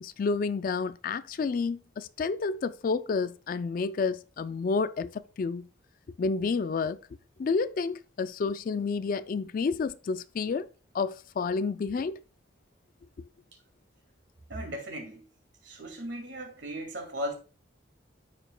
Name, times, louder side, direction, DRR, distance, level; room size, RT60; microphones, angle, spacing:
voice 1, 0.0-5.7 6.2-7.0 7.4-10.7 10.9-12.2 13.2-13.3, left 4 dB, 45° left, 0.3 m, -30 dB
voice 2, 14.5-15.3 15.6-17.3, equal, 65° right, 2.4 m, -37 dB
13.0 x 5.1 x 2.2 m
head